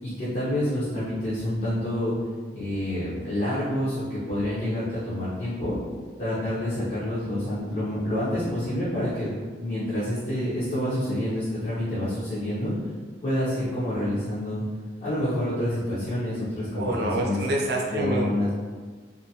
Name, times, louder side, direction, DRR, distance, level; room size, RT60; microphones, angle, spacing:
voice 1, 0.0-2.1 2.5-5.8 6.2-12.7 13.2-14.6 15.0-17.4 17.9-18.5, left 1 dB, 40° left, -11 dB, 0.7 m, -28 dB
voice 2, 16.7-18.3, right 1 dB, 60° right, -1 dB, 0.5 m, -26 dB
2.6 x 2.5 x 2.7 m, 1.5 s
head